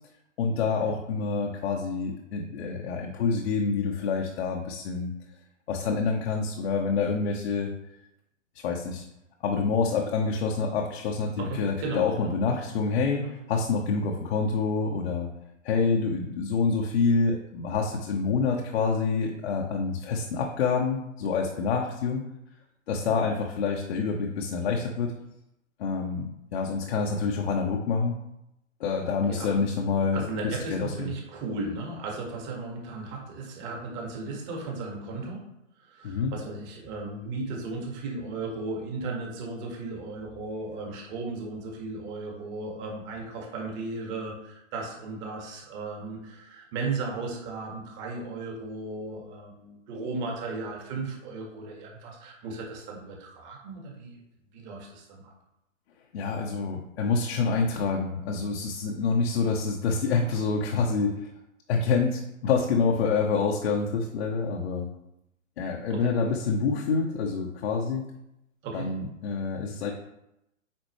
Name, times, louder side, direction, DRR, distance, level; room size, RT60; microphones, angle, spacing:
voice 1, 0.4-5.1 5.7-7.7 8.5-9.0 9.4-15.3 15.6-22.2 22.9-25.1 25.8-28.2 28.8-31.1 36.0-36.3 56.1-61.3 61.7-64.9 65.6-68.1 68.7-69.9, left 4 dB, 50° left, 0 dB, 1.0 m, -27 dB
voice 2, 11.4-12.4 13.1-13.3 29.3-29.6 30.0-35.4 35.8-54.2 54.5-55.3 65.9-66.1 68.6-68.9, right 3 dB, 30° right, 0 dB, 1.8 m, -36 dB
8.7 x 4.3 x 3.2 m, 0.85 s
hypercardioid pair, 130°, 39 cm